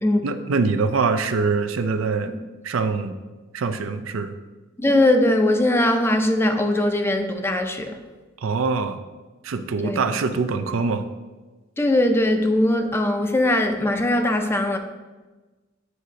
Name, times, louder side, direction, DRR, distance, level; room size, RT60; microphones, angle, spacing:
voice 1, 0.2-2.3 2.6-3.2 3.5-4.4 8.4-9.0 9.4-11.1, right 4 dB, 85° right, 0.4 m, -24 dB
voice 2, 4.8-7.9 9.8-10.0 11.8-14.8, left 1 dB, 10° left, 0.4 m, -20 dB
7.8 x 5.0 x 2.8 m
head